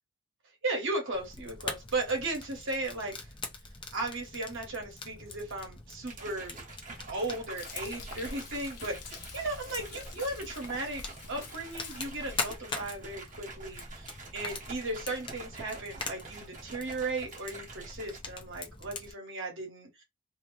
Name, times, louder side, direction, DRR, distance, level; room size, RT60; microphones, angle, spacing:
voice 1, 0.6-3.1 3.9-6.5 6.9-11.0 11.3-20.0, right 2 dB, 55° right, 1.1 m, -36 dB
Fire, 1.1-19.1, left 3 dB, 20° left, 0.5 m, -43 dB
sound 1, 6.1-18.2, right 3 dB, 35° right, 0.9 m, -48 dB
Frying (food), 7.6-12.6, left 5 dB, 90° left, 0.6 m, -46 dB
2.7 x 2.1 x 3.1 m
head